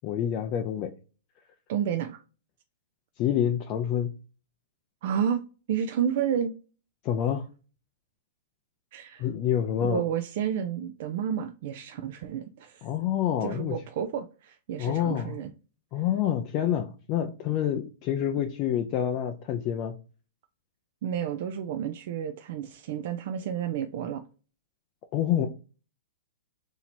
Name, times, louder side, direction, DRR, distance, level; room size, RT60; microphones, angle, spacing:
voice 1, 0.0-0.9 3.2-4.1 7.0-7.5 9.2-10.0 12.8-13.8 14.8-15.3 15.9-20.0 25.1-25.5, left 10 dB, 40° left, 0.4 m, -27 dB
voice 2, 1.7-2.2 5.0-5.4 5.7-6.5 8.9-9.3 9.8-12.9 13.4-15.5 21.0-24.2 25.4-25.5, right 8 dB, 55° right, 0.4 m, -30 dB
2.8 x 2.8 x 4.3 m
hypercardioid pair, 125°, 0 cm